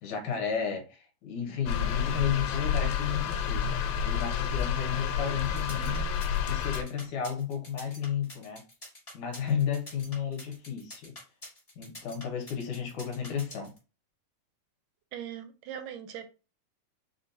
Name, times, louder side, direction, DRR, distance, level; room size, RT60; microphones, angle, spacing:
voice 1, 0.0-6.1 6.4-8.6 9.1-11.1 11.8-13.7, left 7 dB, 70° left, 2.3 m, -33 dB
sound 1, 1.7-6.8, left 8 dB, 90° left, 2.4 m, -30 dB
sound 2, 5.4-13.8, left 1 dB, 40° left, 0.4 m, -47 dB
voice 2, 15.1-16.3, right 9 dB, 80° right, 2.0 m, -40 dB
6.3 x 2.5 x 2.7 m
omnidirectional pair, 3.9 m